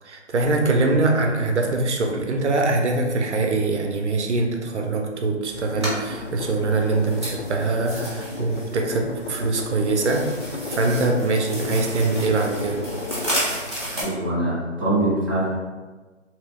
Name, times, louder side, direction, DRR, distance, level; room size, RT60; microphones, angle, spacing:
voice 1, 0.0-10.2 10.7-12.8, right 3 dB, 65° right, 2 dB, 0.6 m, -23 dB
sound 1, 5.5-14.0, equal, 25° right, 0.6 m, -33 dB
sound 2, 5.7-13.8, left 4 dB, 65° left, 0.5 m, -35 dB
voice 2, 13.9-15.6, right 1 dB, 20° left, -12 dB, 0.6 m, -23 dB
2.8 x 2.2 x 3.4 m, 1.3 s
hypercardioid pair, 165°, 38 cm